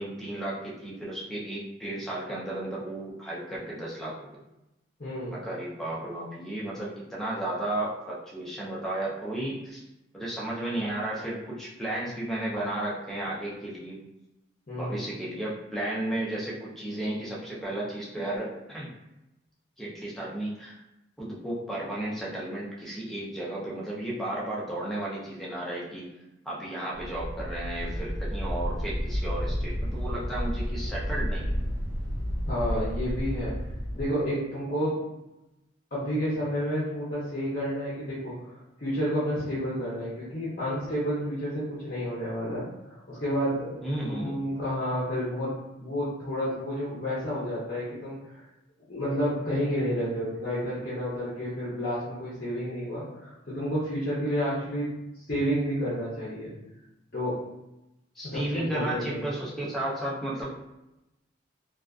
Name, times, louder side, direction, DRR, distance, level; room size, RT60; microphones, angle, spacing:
voice 1, 0.0-4.4 5.3-9.8 10.1-14.0 14.7-18.9 19.8-20.8 21.2-26.0 26.5-31.6 43.8-44.4 58.2-60.5, right 1 dB, ahead, -6 dB, 0.4 m, -33 dB
voice 2, 5.0-5.3 14.7-15.1 32.5-33.5 33.9-35.0 35.9-43.8 44.1-45.5 45.8-48.4 48.9-54.9 55.1-56.5 57.1-57.4 58.2-59.3, equal, 45° left, -10 dB, 0.6 m, -30 dB
sound 1, 26.9-34.1, equal, 70° right, 0.9 m, -31 dB
2.3 x 2.3 x 2.3 m, 0.93 s
head